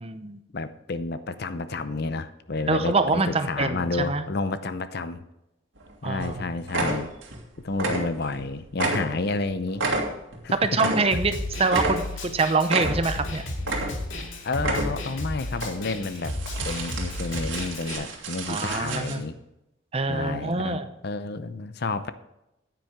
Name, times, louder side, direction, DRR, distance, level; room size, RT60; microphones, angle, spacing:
voice 1, 0.0-0.4 2.7-4.2 6.0-6.5 10.6-13.5 18.5-19.2 19.9-20.9, right 3 dB, 30° right, 10 dB, 0.7 m, -25 dB
voice 2, 0.5-5.2 6.0-7.1 7.6-9.8 10.4-10.9 14.4-16.3 16.6-19.4 20.1-22.1, left 3 dB, 50° left, 12 dB, 0.6 m, -30 dB
sound 1, 5.8-5.9 6.2-6.4 6.7-7.4 7.7-8.4 8.7-11.3 11.7-12.3 12.7-13.2 13.6-14.2 14.5-15.1 15.5-15.7 16.2-19.2, right 2 dB, 70° right, 2.2 m, -30 dB
Snare drum, 11.1-18.0, left 1 dB, 70° left, 2.1 m, -33 dB
9.9 x 9.2 x 3.6 m, 0.89 s
head